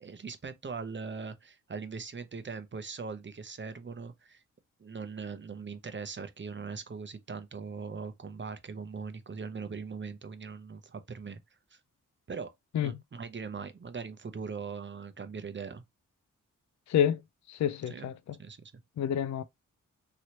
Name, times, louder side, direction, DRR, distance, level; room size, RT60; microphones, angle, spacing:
voice 1, 0.0-4.4 4.8-11.4 11.7-11.8 12.3-15.8 17.9-18.1 18.4-18.7, right 5 dB, 35° right, 0.7 m, -40 dB
voice 2, 16.9-17.2 17.5-18.4 19.0-19.4, left 9 dB, 55° left, 0.4 m, -28 dB
3.1 x 2.9 x 2.8 m
cardioid pair, 50°, 34 cm